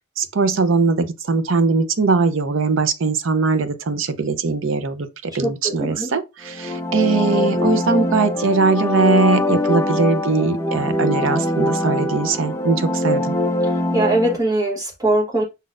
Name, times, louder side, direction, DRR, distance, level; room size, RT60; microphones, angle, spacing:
voice 1, 0.2-13.4, right 4 dB, 75° right, 0.6 m, -20 dB
voice 2, 5.4-6.1 13.6-15.4, right 1 dB, 20° right, 1.1 m, -21 dB
sound 1, 6.4-14.4, left 1 dB, 15° left, 0.6 m, -22 dB
5.5 x 3.9 x 2.5 m
head